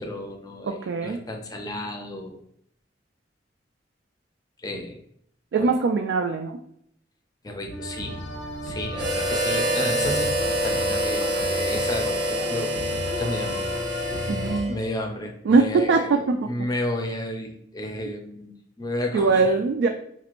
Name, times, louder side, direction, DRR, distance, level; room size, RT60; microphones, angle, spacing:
voice 1, 0.0-2.4 4.6-5.0 5.6-5.7 7.4-8.2 8.6-13.7 14.5-19.5, left 1 dB, 20° left, 3 dB, 0.5 m, -32 dB
voice 2, 0.6-1.2 5.5-6.6 14.3-14.7 15.5-16.4 19.1-19.9, right 4 dB, 75° right, 4 dB, 0.3 m, -21 dB
sound 1, 7.7-14.6, equal, 85° left, 0.8 m, -33 dB
Harmonica, 8.9-15.0, equal, 25° right, 0.7 m, -26 dB
4.1 x 2.5 x 2.9 m, 0.69 s
head